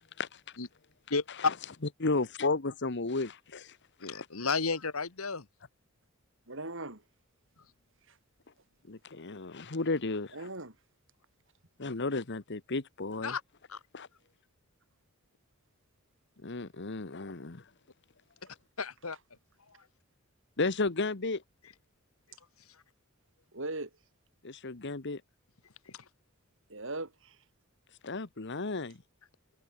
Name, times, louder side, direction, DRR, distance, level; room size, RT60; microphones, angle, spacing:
voice 1, 1.1-1.5 4.0-5.5 13.2-13.4 13.7-13.8 18.8-19.2, left 4 dB, 85° left, 2.1 m, -32 dB
voice 2, 2.0-3.8 8.9-10.3 11.8-13.4 13.9-14.1 16.4-17.6 20.6-21.4 24.4-25.2 28.0-29.0, left 3 dB, 55° left, 1.3 m, -33 dB
voice 3, 6.5-7.0 8.1-8.2 10.3-10.8 23.5-23.9 26.7-27.4, right 2 dB, 65° right, 7.8 m, -39 dB
head